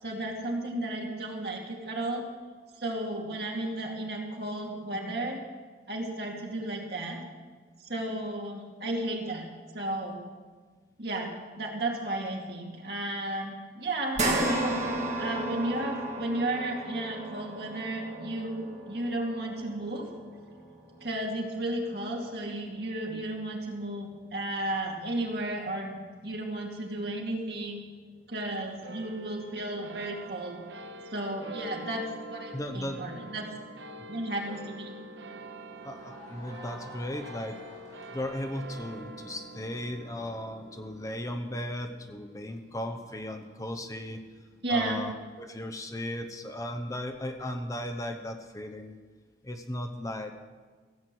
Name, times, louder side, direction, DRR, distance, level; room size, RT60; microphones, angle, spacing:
voice 1, 0.0-2.3 2.8-5.5 5.9-7.2 7.8-9.5 9.7-10.2 11.0-14.8 15.2-20.1 21.0-27.8 28.3-30.6 31.1-33.5 34.1-34.9 44.6-45.0, right 1 dB, 65° right, 0 dB, 2.4 m, -33 dB
sound 1, 14.1-22.8 23.2-23.3 24.8-24.9, right 2 dB, 40° right, 2.2 m, -34 dB
sound 2, 28.8-45.5, right 2 dB, 90° right, 0.8 m, -47 dB
voice 2, 32.5-33.0 35.8-37.6 38.1-44.2 44.7-49.0 49.4-50.3, left 1 dB, 20° left, 5 dB, 0.8 m, -36 dB
sound 3, 35.6-40.3, left 1 dB, 40° left, 5.0 m, -51 dB
16.0 x 8.1 x 7.7 m, 1.5 s
head